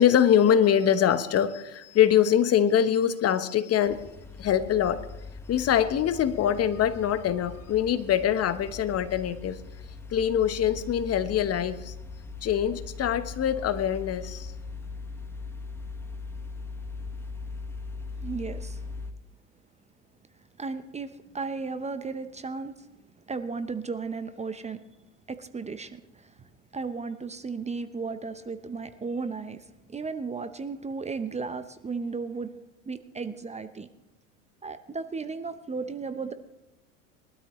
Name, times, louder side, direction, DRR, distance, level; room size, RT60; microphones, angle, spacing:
voice 1, 0.0-4.0 4.4-5.0 5.5-9.6 10.1-11.9 12.4-14.5, left 9 dB, 35° left, 12 dB, 1.1 m, -23 dB
sound 1, 3.9-19.1, left 4 dB, 5° left, 1.4 m, -40 dB
voice 2, 18.2-18.8 20.6-22.9 23.3-24.8 25.3-32.5 32.9-33.9 34.6-36.3, right 4 dB, 15° right, 11 dB, 0.8 m, -35 dB
22.0 x 12.5 x 3.1 m, 0.95 s
hypercardioid pair, 85°, 42 cm